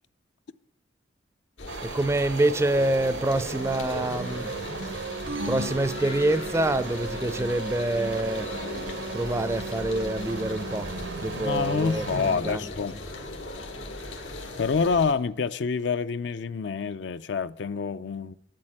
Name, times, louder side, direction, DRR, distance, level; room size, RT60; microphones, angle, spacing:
sound 1, 1.6-15.1, left 2 dB, 90° left, 1.9 m, -38 dB
sound 2, 1.7-12.4, right 4 dB, 70° right, 0.7 m, -36 dB
voice 1, 1.8-4.5 5.5-8.5 9.1-10.9 11.2-12.6, right 1 dB, 15° right, 0.4 m, -26 dB
sound 3, 5.3-6.9, equal, 85° right, 1.5 m, -37 dB
voice 2, 11.4-13.0 14.6-18.3, left 5 dB, 65° left, 0.4 m, -27 dB
10.5 x 7.6 x 8.8 m
head